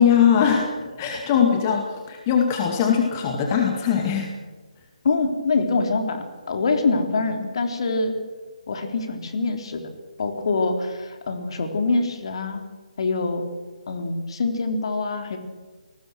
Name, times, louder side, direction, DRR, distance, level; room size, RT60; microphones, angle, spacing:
voice 1, 0.0-4.3, left 7 dB, 25° left, 2 dB, 2.3 m, -20 dB
voice 2, 5.0-8.2 8.7-9.9 10.2-12.6 13.0-13.5 13.9-15.4, left 3 dB, 45° left, 6 dB, 3.7 m, -24 dB
28.5 x 20.0 x 6.3 m, 1.3 s
figure-of-eight pair, 145°, 4 cm